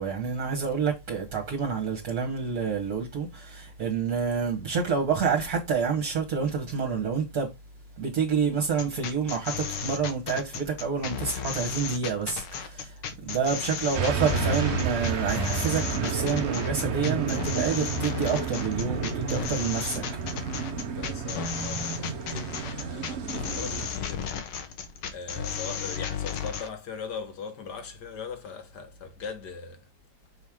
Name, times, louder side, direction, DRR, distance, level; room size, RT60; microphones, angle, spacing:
voice 1, 0.0-7.5 8.0-20.0, right 6 dB, 50° right, 1.7 m, -28 dB
sound 1, 8.7-26.7, left 7 dB, 85° left, 1.9 m, -34 dB
sound 2, 13.9-23.9, right 6 dB, 70° right, 0.6 m, -31 dB
voice 2, 20.8-24.3 24.6-24.7 25.1-29.9, left 5 dB, 55° left, 1.5 m, -40 dB
6.4 x 4.5 x 3.6 m
omnidirectional pair, 2.4 m